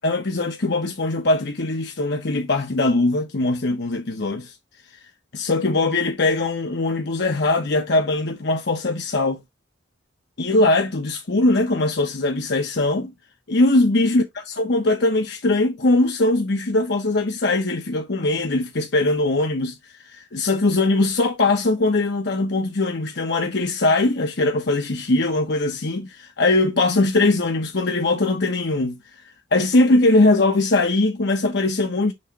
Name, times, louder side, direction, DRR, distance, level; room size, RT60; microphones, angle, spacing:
voice 1, 0.0-4.5 5.3-9.4 10.4-13.1 13.5-14.2 14.6-19.7 20.1-29.0 29.5-32.1, left 2 dB, 65° left, 1.0 m, -21 dB
6.4 x 3.1 x 4.7 m
head